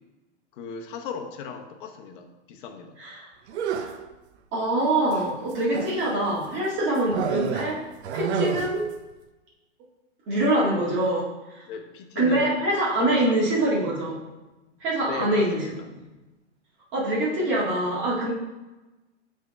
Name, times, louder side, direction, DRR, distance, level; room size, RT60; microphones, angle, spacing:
voice 1, 0.5-3.0 11.6-12.6 13.0-13.6 15.0-15.9, left 6 dB, 45° left, 4 dB, 0.9 m, -37 dB
voice 2, 3.0-3.3 3.7-3.9 4.5-7.8 8.1-8.9 10.3-11.7 12.2-14.2 14.8-15.6 16.9-18.3, right 1 dB, 30° right, -6 dB, 1.8 m, -24 dB
sound 1, 3.5-4.1 5.1-6.1 7.1-8.9, right 7 dB, 65° right, 0.7 m, -29 dB
6.9 x 3.6 x 4.3 m, 1.1 s
hypercardioid pair, 145°, 36 cm